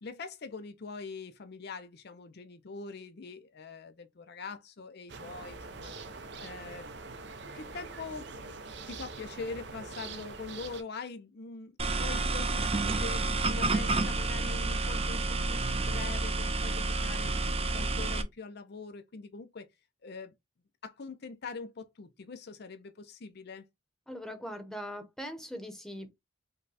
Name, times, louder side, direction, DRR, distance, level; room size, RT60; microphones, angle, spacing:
voice 1, 0.0-5.9 6.4-6.9 7.5-8.6 8.9-17.3 17.7-19.7 20.0-20.3 20.8-23.6, left 4 dB, 60° left, 0.5 m, -43 dB
sound 1, 5.1-10.8, right 3 dB, 65° right, 0.8 m, -44 dB
sound 2, 11.8-18.2, right 2 dB, 30° right, 0.6 m, -30 dB
voice 2, 24.1-26.1, equal, 5° left, 0.9 m, -41 dB
5.4 x 2.3 x 4.0 m
head